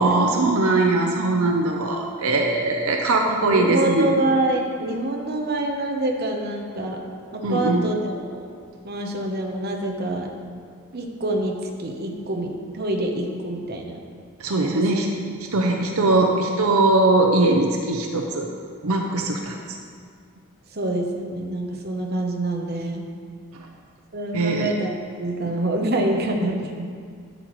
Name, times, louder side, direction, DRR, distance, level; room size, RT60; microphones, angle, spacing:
voice 1, 0.0-4.2 7.4-7.8 14.4-15.1 15.5-18.5 18.8-19.5 23.5-23.7 24.3-24.7, right 2 dB, 70° right, 2 dB, 0.7 m, -20 dB
voice 2, 3.3-7.1 7.3-8.5 8.8-10.3 10.9-14.0 14.6-15.1 20.7-23.1 24.1-24.9 25.2-26.9, right 1 dB, 45° right, 1 dB, 0.8 m, -26 dB
9.5 x 7.8 x 3.1 m, 2.1 s
head